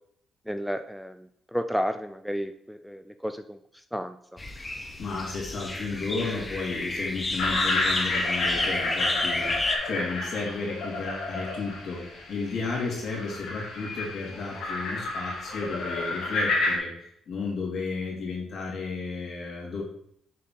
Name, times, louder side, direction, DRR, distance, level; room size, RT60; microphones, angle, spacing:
voice 1, 0.5-4.2, equal, ahead, 8 dB, 0.3 m, -32 dB
sound 1, 4.4-9.8, left 2 dB, 20° left, 0.9 m, -30 dB
voice 2, 5.0-12.0 12.3-19.8, left 4 dB, 60° left, -3 dB, 2.6 m, -33 dB
sound 2, 7.4-16.8, left 2 dB, 80° left, 1.8 m, -31 dB
6.6 x 4.0 x 3.8 m, 0.70 s
cardioid pair, 90°, 0 cm